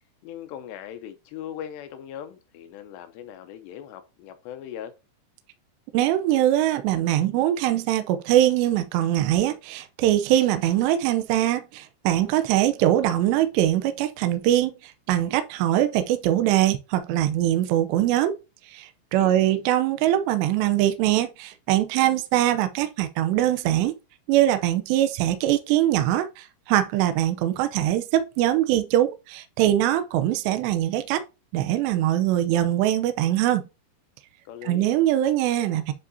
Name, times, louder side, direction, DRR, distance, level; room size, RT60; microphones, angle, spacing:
voice 1, 0.2-4.9 19.1-19.6 34.5-34.9, left 10 dB, 80° left, 2.7 m, -39 dB
voice 2, 5.9-18.4 18.7-24.0 24.3-31.2 31.5-33.6 34.6-35.9, right 13 dB, 80° right, 2.8 m, -22 dB
9.9 x 4.6 x 2.7 m
omnidirectional pair, 5.1 m